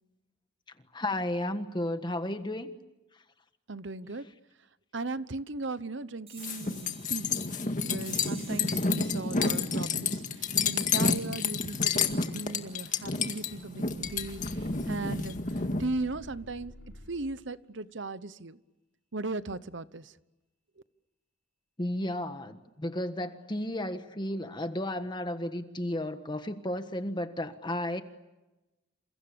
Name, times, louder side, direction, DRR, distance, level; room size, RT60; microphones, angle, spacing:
voice 1, 0.9-2.7 21.8-28.0, left 1 dB, 20° left, 1.4 m, -33 dB
voice 2, 3.7-4.2 4.9-7.4 7.8-15.4 15.8-16.7 17.1-18.6 19.1-20.1, right 3 dB, 60° right, 1.0 m, -37 dB
sound 1, 6.3-13.1, right 5 dB, 30° right, 6.5 m, -55 dB
sound 2, 6.4-15.8, left 4 dB, 40° left, 2.0 m, -30 dB
sound 3, 12.1-12.2 12.6-13.1 13.4-17.4, equal, 65° left, 3.4 m, -49 dB
29.0 x 28.0 x 7.0 m
head